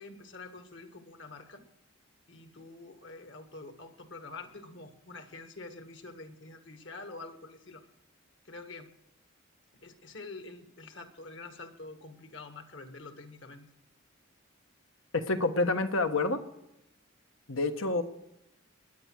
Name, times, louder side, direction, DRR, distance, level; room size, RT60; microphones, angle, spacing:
voice 1, 0.0-1.6 2.3-7.8 8.5-8.9 9.8-13.7, left 3 dB, 60° left, 7 dB, 1.7 m, -46 dB
voice 2, 15.1-16.4 17.5-18.0, left 2 dB, 80° left, 8 dB, 1.3 m, -28 dB
20.0 x 10.5 x 6.3 m, 0.85 s
head